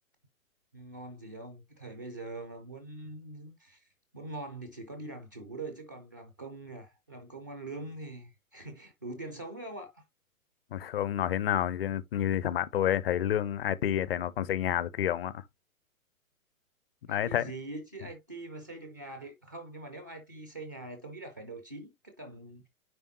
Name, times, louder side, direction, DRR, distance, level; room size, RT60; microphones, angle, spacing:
voice 1, 0.7-3.9 4.1-10.0 17.1-22.7, right 2 dB, 15° right, 0.3 m, -43 dB
voice 2, 10.7-15.4 17.1-17.5, left 11 dB, 45° left, 0.6 m, -29 dB
9.7 x 3.5 x 2.7 m
figure-of-eight pair, 125°, 42 cm